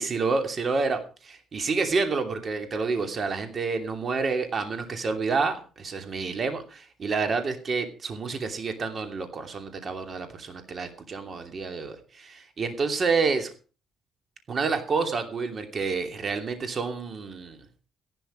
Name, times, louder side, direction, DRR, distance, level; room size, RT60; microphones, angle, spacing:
voice 1, 0.0-13.5 14.5-17.6, right 4 dB, 45° right, 6 dB, 2.7 m, -29 dB
14.5 x 11.5 x 5.1 m, 0.37 s
cardioid pair, 100°, 0 cm